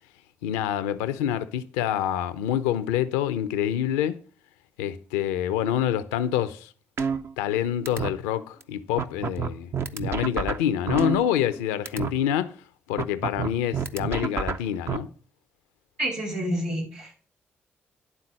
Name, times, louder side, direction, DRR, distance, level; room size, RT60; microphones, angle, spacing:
voice 1, 0.4-4.2 4.8-6.7 7.4-12.5 12.9-15.1, left 10 dB, 85° left, 0.5 m, -26 dB
sound 1, 7.0-7.6 7.9-8.1 8.6-8.7 9.0-11.6 11.9-12.1 13.0-15.0, right 6 dB, 50° right, 0.7 m, -28 dB
voice 2, 16.0-17.3, right 1 dB, 85° right, 4.6 m, -29 dB
11.0 x 3.9 x 7.4 m
hypercardioid pair, 40°, 6 cm